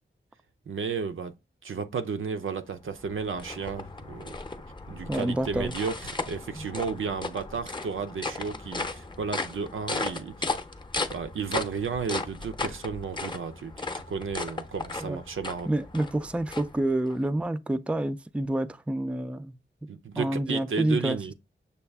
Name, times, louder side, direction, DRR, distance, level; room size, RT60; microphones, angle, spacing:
voice 1, 0.7-1.3 1.6-4.4 4.9-10.6 11.1-15.7 19.9-21.3, right 5 dB, 85° right, 0.6 m, -33 dB
sound 1, 2.7-17.2, left 3 dB, 25° left, 0.6 m, -36 dB
voice 2, 5.1-5.7 6.6-6.7 15.0-15.2 15.7-19.5 20.2-21.3, right 1 dB, 5° right, 0.3 m, -28 dB
6.7 x 2.3 x 3.4 m
wide cardioid pair, 105°, 20 cm